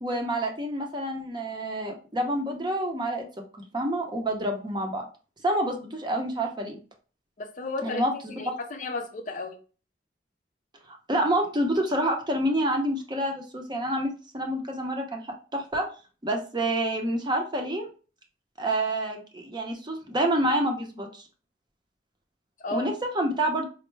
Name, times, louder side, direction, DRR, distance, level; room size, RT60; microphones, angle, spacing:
voice 1, 0.0-3.3 3.7-5.1 5.4-6.8 7.8-8.6 10.9-15.9 16.2-17.9 18.6-21.2 22.7-23.6, right 1 dB, 25° right, 0.6 m, -28 dB
voice 2, 7.4-8.0 8.4-9.6 22.6-22.9, left 3 dB, 45° left, 0.5 m, -33 dB
4.3 x 2.1 x 3.1 m
head